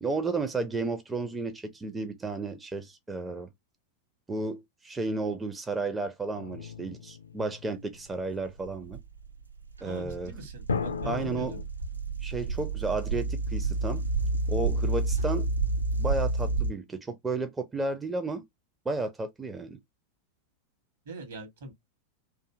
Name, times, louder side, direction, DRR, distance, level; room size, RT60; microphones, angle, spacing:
voice 1, 0.0-3.5 4.3-9.0 9.8-10.3 11.0-11.5 12.2-14.0 14.5-15.5 16.0-18.4 18.9-19.8, right 3 dB, 15° right, 0.4 m, -32 dB
sound 1, 6.4-8.1 10.7-11.6, left 5 dB, 70° left, 0.5 m, -35 dB
sound 2, 8.2-16.7, right 3 dB, 80° right, 0.4 m, -30 dB
voice 2, 9.8-11.6 21.0-21.7, right 2 dB, 60° right, 1.1 m, -43 dB
2.6 x 2.5 x 2.3 m
figure-of-eight pair, 90°, 0 cm